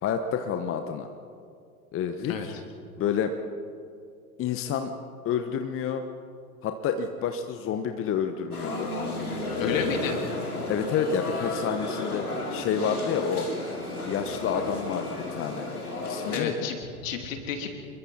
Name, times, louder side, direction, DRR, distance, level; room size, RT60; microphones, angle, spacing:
voice 1, 0.0-1.1 1.9-2.5 3.0-3.4 4.4-4.9 5.2-6.0 6.6-8.9 9.5-10.0 10.7-13.5 14.0-15.7 16.1-16.5, left 7 dB, 30° left, 7 dB, 1.2 m, -29 dB
sound 1, 8.5-16.4, left 2 dB, 85° left, 2.9 m, -33 dB
voice 2, 9.6-10.2 16.3-17.7, left 6 dB, 60° left, 4 dB, 3.1 m, -31 dB
27.0 x 22.5 x 4.3 m, 2.4 s
figure-of-eight pair, 85°, 44 cm